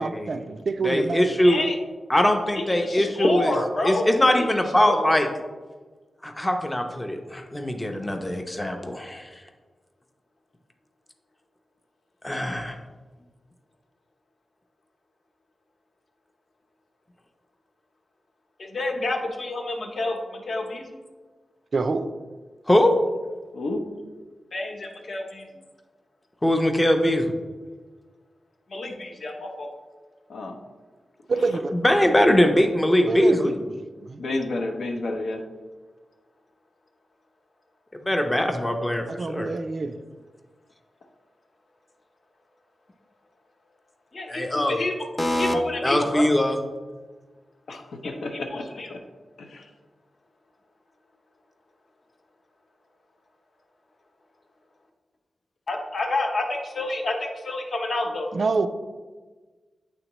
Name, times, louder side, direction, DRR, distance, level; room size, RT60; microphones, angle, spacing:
voice 1, 0.0-1.4 21.7-22.1 31.3-31.7 33.0-34.2 39.1-40.0 58.3-58.7, right 4 dB, 50° right, 8 dB, 0.3 m, -27 dB
voice 2, 0.8-1.6 2.1-3.5 3.8-5.3 6.2-9.3 12.2-12.8 22.7-22.9 26.4-27.3 31.8-33.5 38.0-39.5 44.3-44.8 45.2-45.5 45.8-46.6, left 1 dB, 15° left, 4 dB, 0.5 m, -21 dB
voice 3, 1.4-1.8 2.6-4.0 4.4-4.5 4.8-5.1 18.6-21.0 24.5-25.5 28.7-29.7 44.1-45.1 45.4-46.2 48.0-49.0 55.7-58.3, left 2 dB, 55° left, 1 dB, 0.9 m, -29 dB
voice 4, 23.5-23.9 30.3-30.6 34.2-35.4 47.7-48.7 48.9-49.0 49.4-49.7, left 2 dB, 80° left, 3 dB, 0.7 m, -30 dB
9.0 x 3.5 x 3.0 m, 1.3 s
wide cardioid pair, 130°, 0 cm